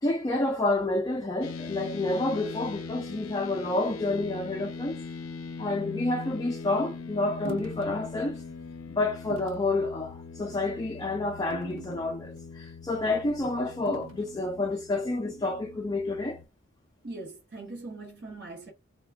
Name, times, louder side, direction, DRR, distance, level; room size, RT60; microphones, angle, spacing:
voice 1, 0.0-5.0 5.6-8.4 8.9-16.4, left 2 dB, 20° left, 0.4 m, -29 dB
sound 1, 1.4-16.5, left 5 dB, 85° left, 0.4 m, -41 dB
sound 2, 7.4-7.9 8.4-8.5 9.3-9.7 10.4-10.7 11.5-12.4 13.9-14.4, right 5 dB, 70° right, 0.4 m, -43 dB
voice 2, 17.0-18.7, right 2 dB, 50° right, 0.8 m, -41 dB
2.3 x 2.2 x 3.3 m
head